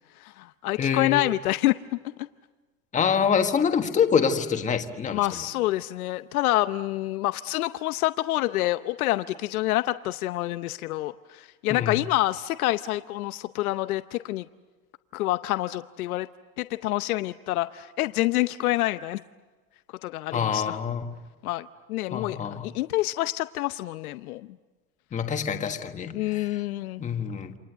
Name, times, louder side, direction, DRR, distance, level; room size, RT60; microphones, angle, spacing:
voice 1, 0.2-1.7 5.1-14.5 15.1-16.3 16.6-19.2 20.0-20.8 21.4-24.5 26.1-27.1, left 17 dB, 90° left, 0.8 m, -27 dB
voice 2, 0.8-1.2 2.9-5.4 11.7-12.0 20.3-21.1 22.1-22.7 25.1-26.6 27.0-27.6, left 7 dB, 15° left, 1.5 m, -26 dB
29.0 x 26.0 x 8.0 m
supercardioid pair, 150°, 42 cm